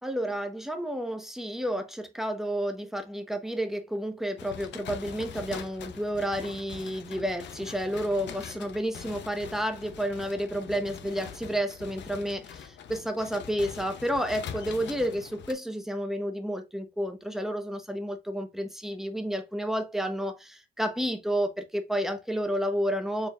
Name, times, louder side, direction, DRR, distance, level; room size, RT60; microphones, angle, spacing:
voice 1, 0.0-23.3, equal, ahead, 0.8 m, -31 dB
sound 1, 4.4-15.5, left 8 dB, 65° left, 0.6 m, -43 dB
4.6 x 3.2 x 2.3 m
cardioid pair, 90°, 20 cm